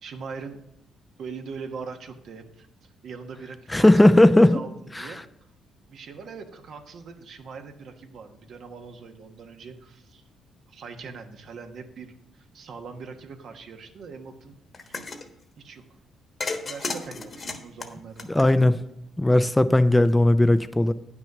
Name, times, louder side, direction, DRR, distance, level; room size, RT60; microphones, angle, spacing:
voice 1, 0.0-0.6 1.2-4.2 4.5-5.2 5.9-10.2 10.7-14.6 14.8-15.0 15.6-15.8 16.6-18.3, right 5 dB, 65° right, 5 dB, 1.2 m, -41 dB
voice 2, 3.7-4.5 4.9-5.1 18.3-18.8 19.2-20.9, left 1 dB, 10° left, 12 dB, 0.5 m, -17 dB
sound 1, 14.7-15.3 16.4-18.9, left 3 dB, 35° left, 1.2 m, -33 dB
9.2 x 6.1 x 5.9 m, 0.82 s
cardioid pair, 90°, 0 cm